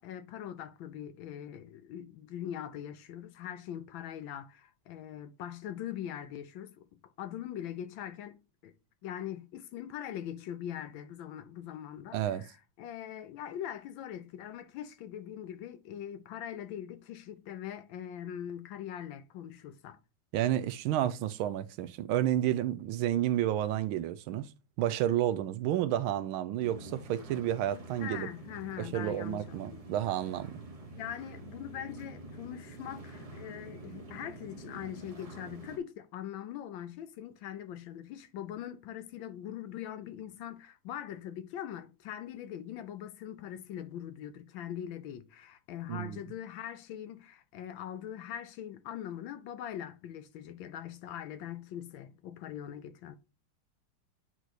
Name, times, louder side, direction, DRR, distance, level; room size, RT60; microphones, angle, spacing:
voice 1, 0.0-6.9 7.2-8.4 8.6-8.7 9.0-20.0 28.0-29.8 30.9-53.2, left 10 dB, 75° left, 1.3 m, -42 dB
voice 2, 12.1-12.4 20.3-24.5 24.8-28.3 28.8-30.6 45.9-46.2, right 12 dB, 80° right, 1.4 m, -31 dB
sound 1, 26.6-35.8, right 2 dB, 30° right, 0.7 m, -47 dB
9.2 x 3.1 x 4.0 m
omnidirectional pair, 2.3 m